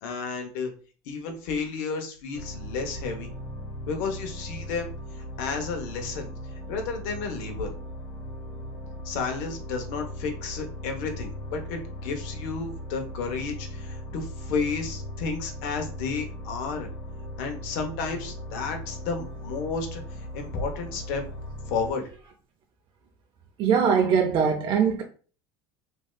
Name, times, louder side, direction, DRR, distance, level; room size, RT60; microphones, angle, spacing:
voice 1, 0.0-0.7 1.1-3.3 3.9-4.9 5.4-6.3 6.7-7.8 9.0-16.9 17.4-20.0 20.3-21.2 21.7-22.1, left 4 dB, 75° left, 0.8 m, -32 dB
sound 1, 2.3-21.9, equal, 45° left, 1.4 m, -38 dB
voice 2, 23.6-25.0, right 6 dB, 45° right, 0.5 m, -21 dB
3.1 x 2.7 x 2.3 m
supercardioid pair, 105°, 12 cm